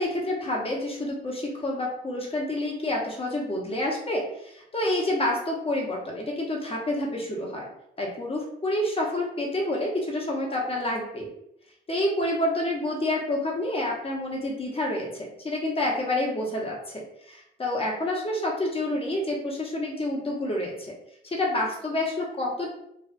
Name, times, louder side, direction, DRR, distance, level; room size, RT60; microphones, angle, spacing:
voice 1, 0.0-7.7 8.0-11.3 11.9-20.7 21.2-22.7, left 1 dB, 30° left, -2 dB, 0.9 m, -28 dB
2.5 x 2.4 x 2.4 m, 0.77 s
cardioid pair, 90°, 20 cm